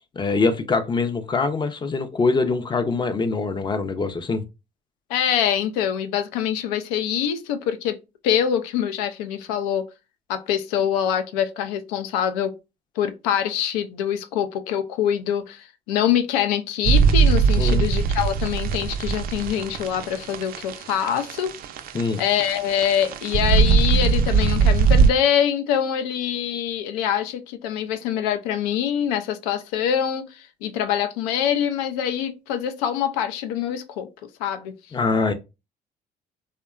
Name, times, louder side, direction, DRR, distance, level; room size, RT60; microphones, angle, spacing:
voice 1, 0.1-4.4 17.6-17.9 21.9-22.2 34.9-35.3, left 4 dB, 25° left, 0.5 m, -23 dB
voice 2, 5.1-8.0 8.2-9.8 10.3-12.5 13.0-21.5 22.2-34.1 34.4-34.7, left 9 dB, 90° left, 0.4 m, -24 dB
sound 1, 16.8-25.1, right 5 dB, 50° right, 0.4 m, -20 dB
2.8 x 2.1 x 2.3 m
supercardioid pair, 80°, 19 cm